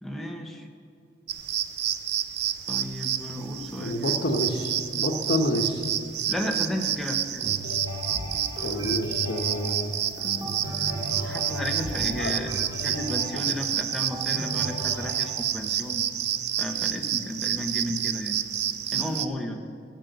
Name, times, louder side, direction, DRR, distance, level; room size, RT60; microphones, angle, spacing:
voice 1, 0.0-0.7 2.7-4.1 6.3-7.5 11.2-12.5 12.8-16.0 16.6-18.4 18.9-19.6, left 1 dB, ahead, 1 dB, 1.0 m, -33 dB
sound 1, 1.3-19.3, right 10 dB, 60° right, 0.5 m, -29 dB
voice 2, 3.8-5.9 8.6-9.9 12.1-12.4, left 1 dB, 60° left, 4 dB, 1.1 m, -28 dB
sound 2, 7.4-15.3, equal, 25° right, 2.2 m, -36 dB
15.0 x 6.5 x 8.0 m, 2.3 s
head